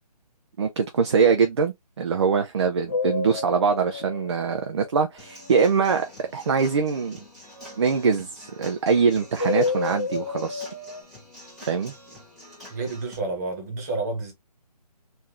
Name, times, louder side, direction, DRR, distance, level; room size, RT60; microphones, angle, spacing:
voice 1, 0.6-7.2 7.8-10.7 11.7-11.9, right 5 dB, 40° right, 0.5 m, -23 dB
sound 1, 2.9-5.3 9.4-11.0, left 4 dB, 20° left, 0.3 m, -29 dB
Human voice / Acoustic guitar / Drum, 5.2-13.2, left 1 dB, ahead, 1.4 m, -46 dB
voice 2, 12.7-14.3, right 3 dB, 25° right, 1.4 m, -29 dB
3.8 x 2.7 x 2.9 m
figure-of-eight pair, 160°, 21 cm